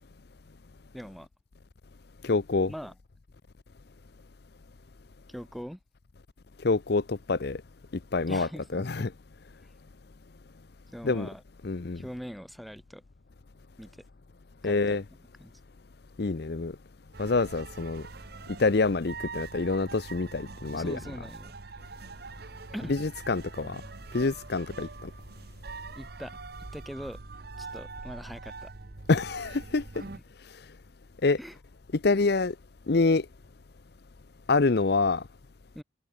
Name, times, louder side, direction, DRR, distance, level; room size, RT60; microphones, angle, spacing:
voice 1, 0.9-1.3 2.7-2.9 5.3-5.8 8.3-9.1 10.9-11.4 11.9-13.0 13.8-14.0 14.6-15.0 15.4-15.5 20.7-21.5 22.7-23.0 25.9-26.4 26.7-27.2 27.6-28.7 30.0-30.2 31.4-31.6 35.7-35.8, equal, ahead, 3.3 m, -42 dB
voice 2, 2.2-2.7 6.6-7.6 8.1-9.1 11.0-11.3 11.6-12.0 14.6-15.0 16.2-16.7 17.2-18.1 18.6-21.0 22.9-23.8 24.1-25.1 29.1-29.8 31.2-31.4 32.0-32.5 32.9-33.3 34.5-35.2, left 3 dB, 55° left, 0.6 m, -26 dB
sound 1, 17.1-30.2, right 4 dB, 50° right, 0.9 m, -44 dB
head